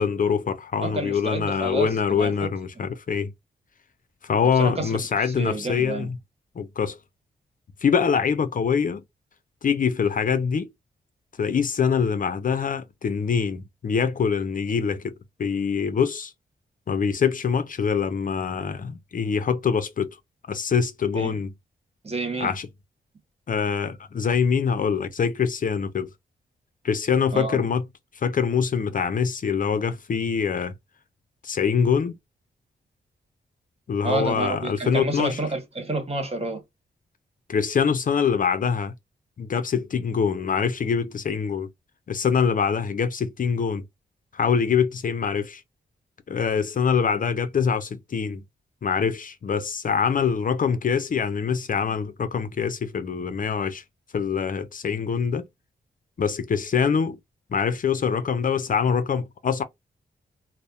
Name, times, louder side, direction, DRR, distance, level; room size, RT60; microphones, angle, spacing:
voice 1, 0.0-3.3 4.2-6.2 6.6-7.0 7.8-9.0 9.6-10.7 11.4-15.1 15.4-16.3 16.9-20.2 20.5-21.5 22.4-22.7 23.5-26.1 26.8-27.8 28.1-30.7 31.4-32.1 33.9-35.4 37.5-38.9 39.4-41.7 42.1-43.8 44.3-45.6 46.3-48.4 48.8-53.8 54.1-55.5 56.2-57.2 57.5-59.6, left 6 dB, 50° left, 0.5 m, -24 dB
voice 2, 0.8-2.3 4.6-5.0 5.2-6.1 21.1-21.3 22.0-22.5 27.3-27.6 34.0-36.6, right 2 dB, 35° right, 1.1 m, -29 dB
2.7 x 2.0 x 2.2 m
cardioid pair, 65°, 18 cm